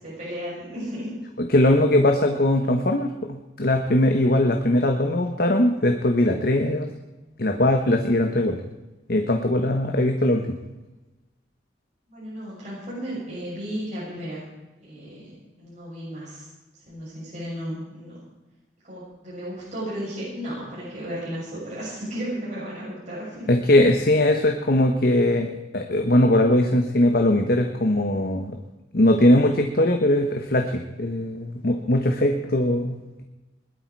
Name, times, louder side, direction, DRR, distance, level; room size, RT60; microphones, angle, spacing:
voice 1, 0.0-1.1 1.6-1.8 12.1-14.5 14.8-16.5 16.7-18.2 18.8-23.8, equal, 40° right, -8 dB, 7.4 m, -34 dB
voice 2, 1.5-6.9 7.4-8.6 9.1-10.6 23.5-28.6 28.9-33.2, left 1 dB, 55° left, 4 dB, 1.3 m, -20 dB
21.0 x 12.5 x 4.7 m, 1.1 s
head